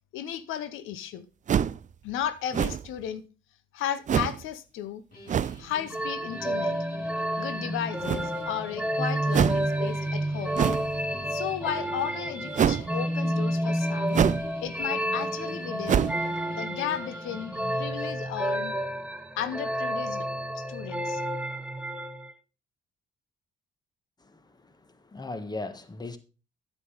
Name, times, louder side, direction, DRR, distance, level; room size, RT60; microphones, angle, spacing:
voice 1, 0.1-1.3 2.0-3.2 3.7-5.0 5.6-6.8 7.4-10.6 11.3-14.2 14.6-16.1 16.6-17.5 17.8-18.7 19.4-21.2, left 10 dB, 85° left, 0.8 m, -34 dB
sound 1, 1.5-1.9 2.5-3.0 4.1-4.4 5.3-5.6 8.0-8.5 9.3-9.7 10.6-10.9 12.5-12.9 14.1-14.5 14.8-14.9 15.9-16.3, right 8 dB, 40° right, 0.4 m, -25 dB
sound 2, 5.1-17.9, equal, 50° left, 3.5 m, -46 dB
sound 3, 5.9-22.3, right 1 dB, 5° right, 0.8 m, -30 dB
voice 2, 24.2-26.2, left 2 dB, 20° left, 1.3 m, -38 dB
9.4 x 8.3 x 3.9 m
cardioid pair, 90°, 20 cm